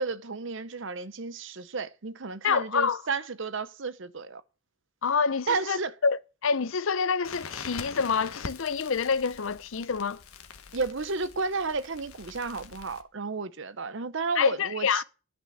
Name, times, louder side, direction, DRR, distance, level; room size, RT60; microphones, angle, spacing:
voice 1, 0.0-4.4 5.5-5.9 10.7-15.0, right 4 dB, 55° right, 0.7 m, -32 dB
voice 2, 2.4-3.0 5.0-10.2 14.4-15.0, left 5 dB, 65° left, 0.6 m, -27 dB
Crackle, 7.2-13.0, left 5 dB, 80° left, 1.2 m, -43 dB
11.0 x 6.2 x 6.2 m
head